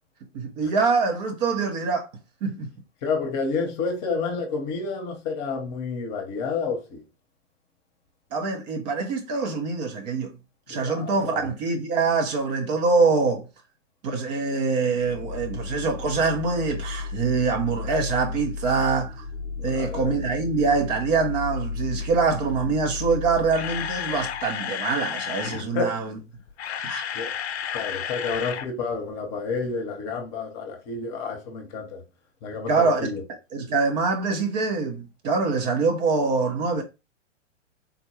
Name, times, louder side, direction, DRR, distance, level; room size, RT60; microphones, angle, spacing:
voice 1, 0.3-2.1 2.4-2.7 8.3-10.3 10.7-13.5 14.0-19.3 19.6-26.2 26.9-27.0 32.7-33.0 33.5-36.8, right 4 dB, 35° right, 0.6 m, -24 dB
voice 2, 3.0-7.0 10.7-11.5 18.7-18.8 19.6-20.1 25.4-26.0 27.1-27.3 27.7-32.0 32.4-33.2, left 4 dB, 35° left, 0.9 m, -30 dB
sound 1, 14.9-24.6, left 4 dB, 5° left, 0.8 m, -34 dB
Camera, 23.2-25.6 26.4-28.7 28.9-29.1 29.6-29.7, left 9 dB, 60° left, 0.5 m, -32 dB
3.5 x 2.2 x 3.0 m
figure-of-eight pair, 115°, 37 cm